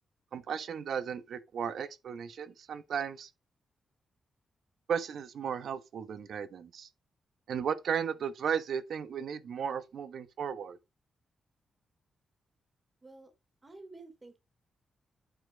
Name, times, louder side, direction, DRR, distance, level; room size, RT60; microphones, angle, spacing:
voice 1, 0.3-3.3 4.9-6.9 7.5-10.8, right 7 dB, 75° right, 1.2 m, -35 dB
voice 2, 13.0-13.3 13.6-14.4, right 2 dB, 25° right, 3.1 m, -50 dB
9.0 x 5.7 x 4.0 m
cardioid pair, 105°, 0 cm